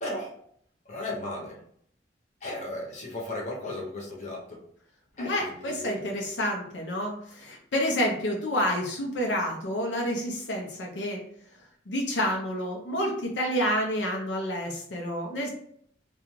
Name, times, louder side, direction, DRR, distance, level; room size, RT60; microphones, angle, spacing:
voice 1, 0.0-0.4 0.8-1.6 2.4-4.6 5.2-6.2, left 1 dB, 40° left, -2 dB, 0.8 m, -36 dB
voice 2, 5.2-11.2 11.9-15.5, equal, 85° left, 0 dB, 0.6 m, -29 dB
2.4 x 2.3 x 3.1 m, 0.65 s
head